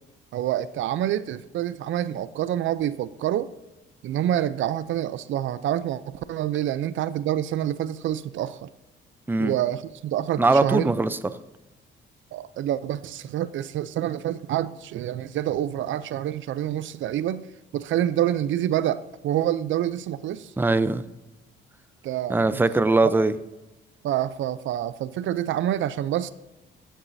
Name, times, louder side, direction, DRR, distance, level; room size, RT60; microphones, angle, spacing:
voice 1, 0.3-3.5 4.0-8.7 9.4-10.9 12.3-17.5 17.7-20.5 22.0-22.7 24.0-26.3, right 12 dB, 75° right, 0.5 m, -27 dB
voice 2, 10.4-11.2 20.6-21.0 22.3-23.3, right 2 dB, 10° right, 0.6 m, -21 dB
15.5 x 8.9 x 2.7 m
cardioid pair, 90°, 20 cm